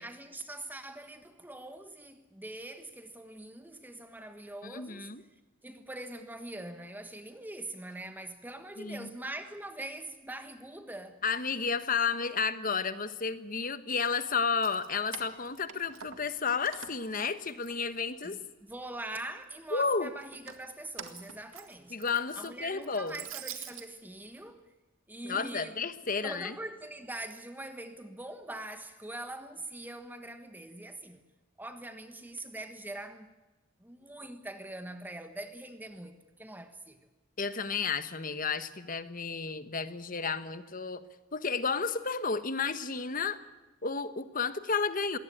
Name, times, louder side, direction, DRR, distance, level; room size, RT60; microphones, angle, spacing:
voice 1, 0.0-5.1 5.6-11.2 18.2-22.0 22.4-24.7 25.1-31.2 31.6-33.3 33.8-37.1, right 1 dB, 10° right, 1.4 m, -43 dB
voice 2, 4.6-5.2 8.8-9.1 11.2-18.4 19.7-20.1 21.9-23.2 25.2-26.6 37.4-41.0 41.3-43.4 43.8-45.2, left 5 dB, 40° left, 1.3 m, -32 dB
Keys jangling, 14.4-16.4 16.7-18.3 18.7-19.4 20.2-23.9, right 8 dB, 80° right, 2.0 m, -46 dB
21.5 x 18.0 x 8.9 m
head